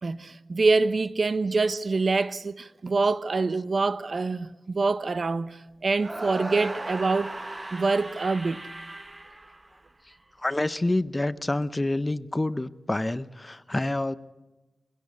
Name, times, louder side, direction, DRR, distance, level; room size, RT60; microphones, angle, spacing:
voice 1, 0.0-5.6 5.8-7.3 7.7-8.6, right 3 dB, 50° right, 0.9 m, -25 dB
sound 1, 6.0-10.2, right 2 dB, 25° right, 1.2 m, -37 dB
voice 2, 10.4-14.2, left 2 dB, 20° left, 0.8 m, -27 dB
23.5 x 17.0 x 8.4 m
cardioid pair, 75°, 0 cm